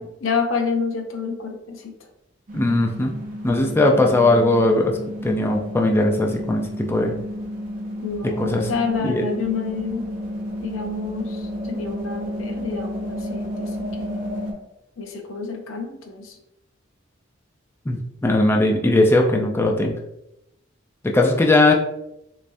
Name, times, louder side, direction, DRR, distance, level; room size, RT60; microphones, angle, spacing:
voice 1, 0.0-1.9 8.0-10.0 10.6-13.7 14.0-14.2 15.0-16.4, left 5 dB, 85° left, 4 dB, 0.6 m, -28 dB
voice 2, 2.5-3.1 3.4-4.9 5.2-7.1 8.2-8.7 9.0-9.2 17.9-20.0 21.0-21.7, left 2 dB, 10° left, 1 dB, 0.3 m, -19 dB
sound 1, 2.5-14.5, equal, 45° right, 0.8 m, -31 dB
3.4 x 3.2 x 2.6 m, 0.85 s
head